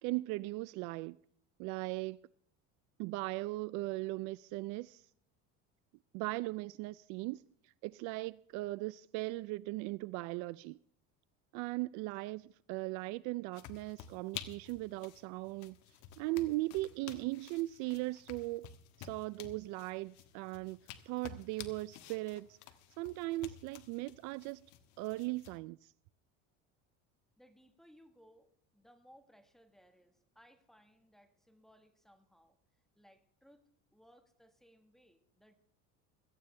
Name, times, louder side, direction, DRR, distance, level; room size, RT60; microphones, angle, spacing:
voice 1, 0.0-1.2 1.6-2.2 3.0-5.0 6.1-7.4 7.8-10.8 11.5-15.8 16.2-18.7 19.0-20.8 21.1-22.6 23.0-24.7 25.0-25.9, right 20 dB, 65° right, 0.4 m, -38 dB
sound 1, 13.5-25.6, left 10 dB, 65° left, 1.5 m, -52 dB
voice 2, 27.4-33.6 33.9-35.5, equal, ahead, 1.5 m, -64 dB
17.5 x 14.0 x 3.3 m
cardioid pair, 150°, 33 cm